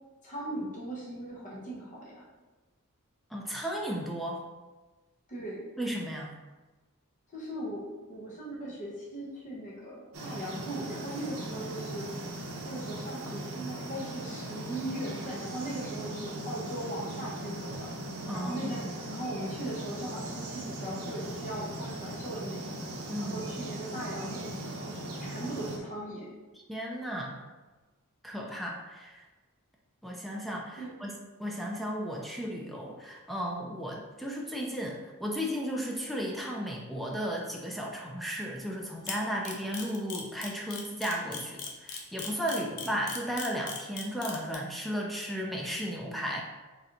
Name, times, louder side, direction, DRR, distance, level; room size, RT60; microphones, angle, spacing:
voice 1, 0.2-2.3 5.3-5.7 7.3-7.8 8.1-12.1 12.6-17.9 18.3-22.7 23.2-24.6 24.8-26.3 30.8-31.0 42.5-42.9, right 1 dB, 35° left, -5 dB, 0.8 m, -39 dB
voice 2, 3.3-4.4 5.8-6.4 18.3-18.9 23.1-23.4 26.7-27.4 28.2-29.2 30.0-31.1 31.4-46.4, equal, ahead, -1 dB, 0.3 m, -34 dB
sound 1, 10.1-25.8, right 1 dB, 65° right, 0.6 m, -39 dB
Camera, 39.1-44.5, left 6 dB, 90° left, 0.7 m, -38 dB
3.8 x 3.2 x 2.8 m, 1.2 s
head